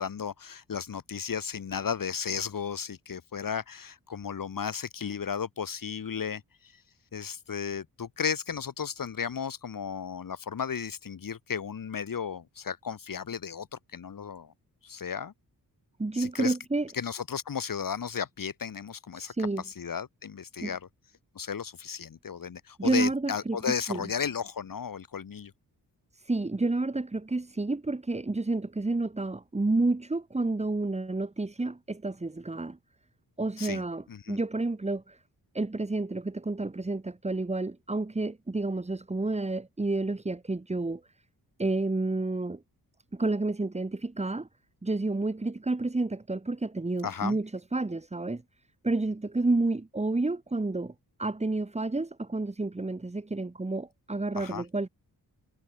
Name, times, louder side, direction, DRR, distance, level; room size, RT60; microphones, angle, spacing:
voice 1, 0.0-6.4 6.7-6.8 7.1-14.5 14.8-15.3 16.1-16.5 16.9-19.3 19.6-20.8 21.3-25.5 33.6-33.8 34.1-34.4 47.0-47.4 54.4-54.6, left 7 dB, 60° left, 4.6 m, -34 dB
voice 2, 16.0-16.9 19.1-19.6 20.6-20.7 22.8-24.1 26.1-32.8 33.4-35.2 35.5-41.0 41.6-42.6 43.1-44.5 44.8-48.4 48.8-50.9 51.2-54.9, right 2 dB, 15° right, 2.5 m, -30 dB
wide cardioid pair, 130°, 37 cm